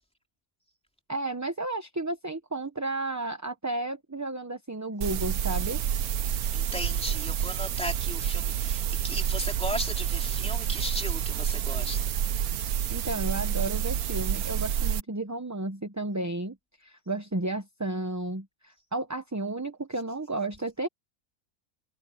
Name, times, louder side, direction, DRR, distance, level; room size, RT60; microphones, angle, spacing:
voice 1, 1.1-5.8 12.9-20.9, right 2 dB, 15° right, 0.8 m, -33 dB
sound 1, 5.0-15.0, right 9 dB, 85° right, 1.3 m, -29 dB
voice 2, 6.5-12.0, equal, 5° left, 3.1 m, -36 dB
omnidirectional pair, 1.5 m